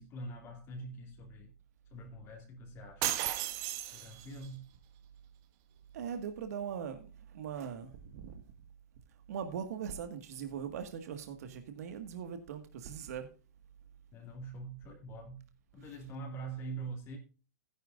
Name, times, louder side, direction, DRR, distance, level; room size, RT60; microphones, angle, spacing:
voice 1, 0.0-1.5 1.9-3.1 3.9-4.7 14.1-15.4 15.7-17.2, right 3 dB, 25° left, 2.4 m, -44 dB
sound 1, 3.0-4.5, right 13 dB, 35° right, 1.2 m, -34 dB
voice 2, 5.9-8.4 9.1-13.3 14.3-14.4 15.8-16.0, right 7 dB, 65° right, 1.7 m, -41 dB
14.5 x 10.5 x 2.5 m
hypercardioid pair, 150°, 9 cm